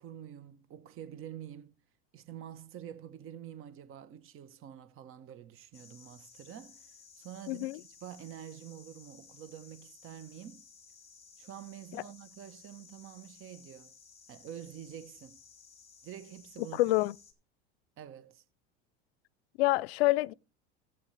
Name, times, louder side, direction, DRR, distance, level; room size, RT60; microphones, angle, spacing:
voice 1, 0.0-1.7 2.1-6.9 7.2-7.7 8.0-10.6 11.4-13.9 14.3-15.4 16.0-16.8 18.0-18.4, right 10 dB, 45° right, 1.2 m, -47 dB
sound 1, 5.7-17.3, left 5 dB, 20° left, 3.0 m, -57 dB
voice 2, 7.5-7.8 16.8-17.1 19.6-20.3, left 20 dB, 80° left, 0.5 m, -27 dB
16.5 x 8.2 x 3.3 m
supercardioid pair, 100°, 30 cm